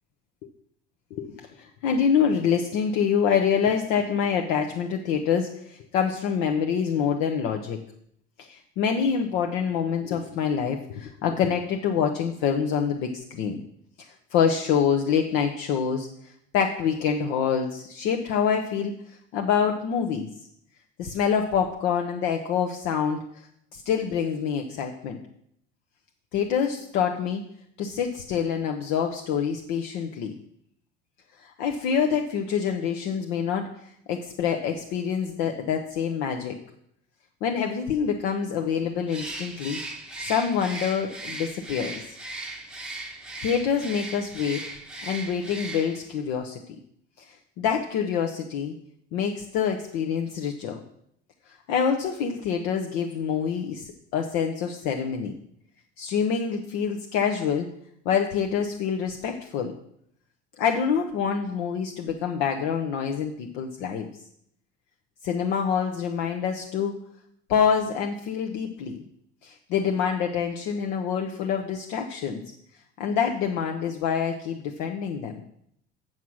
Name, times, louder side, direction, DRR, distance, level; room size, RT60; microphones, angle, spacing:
voice 1, 1.1-7.8 8.4-13.6 14.3-16.1 16.5-20.3 21.0-23.2 23.7-25.2 26.3-27.4 27.8-30.3 31.4-33.7 34.1-36.5 37.4-39.8 40.2-42.2 43.4-44.6 45.0-46.6 47.6-48.7 49.1-50.8 51.7-55.3 56.0-57.7 58.0-59.7 60.6-64.1 65.2-66.9 67.5-69.0 69.4-72.4 73.0-75.4, left 7 dB, 60° left, 3 dB, 0.9 m, -26 dB
Bird, 39.1-46.1, right 2 dB, 5° right, 0.9 m, -38 dB
7.7 x 7.3 x 6.3 m, 0.70 s
cardioid pair, 170°, 19 cm